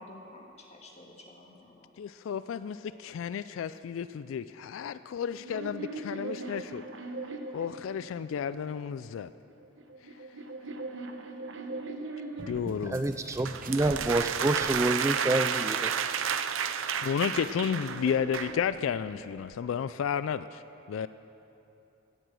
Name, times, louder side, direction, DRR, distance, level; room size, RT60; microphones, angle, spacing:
voice 1, 0.0-2.0, left 1 dB, 35° left, 0 dB, 1.8 m, -50 dB
voice 2, 2.0-6.9 7.5-9.3 12.5-13.0 17.0-20.6 20.9-21.1, left 7 dB, 85° left, 14 dB, 0.3 m, -32 dB
sound 1, 5.2-8.6 9.5-12.9 13.5-16.0 17.0-19.4, right 2 dB, 65° right, 1.1 m, -42 dB
sound 2, 12.4-15.1 15.4-15.6 16.0-19.6, right 2 dB, 45° right, 0.8 m, -47 dB
voice 3, 12.9-15.9, right 2 dB, 15° right, 9 dB, 0.3 m, -28 dB
sound 3, 13.5-18.6, right 7 dB, 85° right, 0.6 m, -31 dB
16.5 x 8.0 x 7.5 m, 2.9 s
head